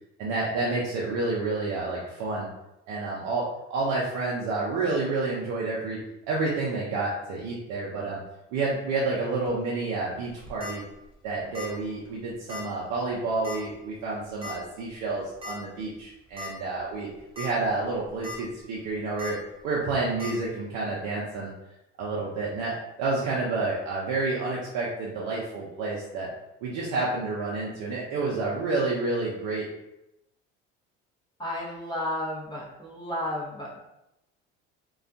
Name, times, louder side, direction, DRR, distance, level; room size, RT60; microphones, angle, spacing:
voice 1, 0.2-2.5 2.9-3.4 3.7-6.0 6.3-8.2 8.5-10.8 11.2-17.1 17.3-19.4 19.6-21.5 22.0-26.3 26.6-29.7, right 3 dB, 75° right, -5 dB, 0.6 m, -29 dB
sound 1, 10.3-10.7 11.5-11.8 12.1-12.2 12.5-12.6 13.4-13.7 14.4-14.5 15.4-15.6 16.0-16.1 16.4-16.5 17.2-17.5 17.9-18.4 19.2-19.3 20.2-20.3, left 4 dB, 20° right, 0.8 m, -37 dB
voice 2, 31.4-33.8, left 1 dB, 15° left, -5 dB, 0.6 m, -32 dB
2.3 x 2.2 x 2.6 m, 0.89 s
supercardioid pair, 75°, 30 cm